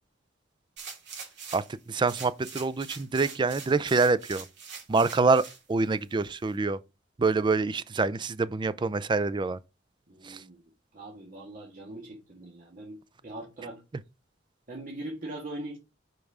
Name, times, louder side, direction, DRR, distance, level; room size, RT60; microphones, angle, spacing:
sound 1, 0.8-1.7 2.1-5.6 6.1-6.2, right 5 dB, 65° right, 2.5 m, -43 dB
voice 1, 1.5-4.5 4.9-6.8 7.2-9.6 10.2-10.4, right 3 dB, 25° right, 0.4 m, -26 dB
voice 2, 10.1-10.6 10.9-13.8 14.7-15.8, right 1 dB, 45° right, 1.8 m, -41 dB
5.3 x 4.6 x 4.9 m
head